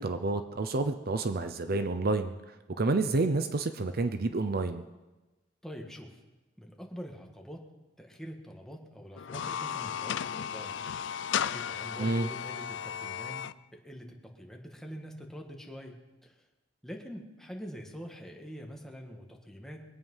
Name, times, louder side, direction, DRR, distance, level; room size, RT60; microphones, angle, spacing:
voice 1, 0.0-4.8 12.0-12.3, right 3 dB, 55° right, 9 dB, 0.7 m, -29 dB
voice 2, 5.6-6.2 6.6-7.6 8.0-10.8 11.3-16.0 16.2-16.3 16.8-19.9, equal, ahead, 0 dB, 1.9 m, -45 dB
sound 1, 9.2-13.5, left 8 dB, 70° left, 0.4 m, -35 dB
22.5 x 9.0 x 5.6 m, 1.1 s
head